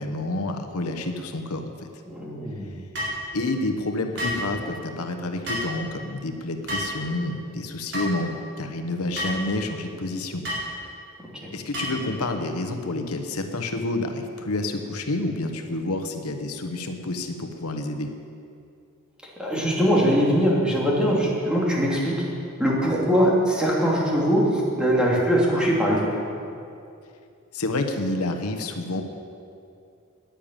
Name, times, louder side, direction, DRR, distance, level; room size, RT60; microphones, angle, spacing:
voice 1, 0.0-1.9 3.3-10.4 11.5-18.1 27.5-29.0, left 2 dB, 90° left, 6 dB, 1.1 m, -29 dB
voice 2, 2.1-2.8 11.4-11.5 19.4-22.1 22.6-26.1, equal, 5° right, -5 dB, 3.0 m, -21 dB
sound 1, 2.9-3.2 4.2-4.4 5.5-5.7 6.7-7.0 7.9-8.1 9.2-9.4 10.4-10.7 11.7-12.0, equal, 55° right, 4.4 m, -29 dB
10.5 x 10.5 x 9.0 m, 2.5 s
head